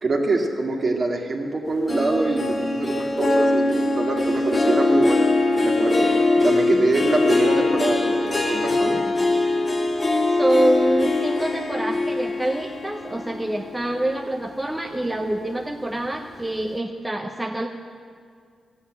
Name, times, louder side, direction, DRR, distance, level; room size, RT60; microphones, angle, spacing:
voice 1, 0.0-5.3 5.6-6.1 6.4-9.0, right 2 dB, 45° right, 0 dB, 2.1 m, -24 dB
Harp, 1.9-14.6 15.0-15.4 15.9-16.0, left 2 dB, 40° left, 2.0 m, -22 dB
voice 2, 6.7-7.1 10.3-17.7, right 1 dB, 10° right, 2 dB, 0.7 m, -26 dB
14.5 x 7.9 x 8.9 m, 2.2 s
cardioid pair, 80°, 0 cm